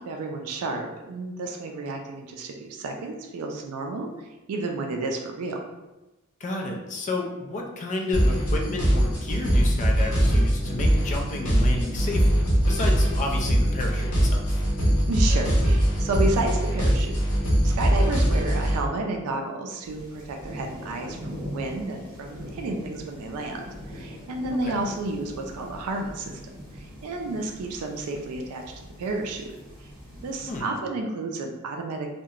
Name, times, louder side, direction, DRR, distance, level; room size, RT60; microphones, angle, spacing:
voice 1, 0.1-5.6 15.0-17.1 17.4-26.4 26.8-28.6 29.0-29.5 30.2-32.1, right 2 dB, 75° right, 2 dB, 0.4 m, -31 dB
voice 2, 6.4-14.5 24.5-24.8 30.5-30.7, left 2 dB, 35° left, 1 dB, 0.3 m, -31 dB
sound 1, 8.1-18.8, equal, 70° left, 0.8 m, -22 dB
sound 2, 19.8-30.6, equal, 40° right, 1.1 m, -41 dB
2.8 x 2.1 x 2.4 m, 1.0 s
head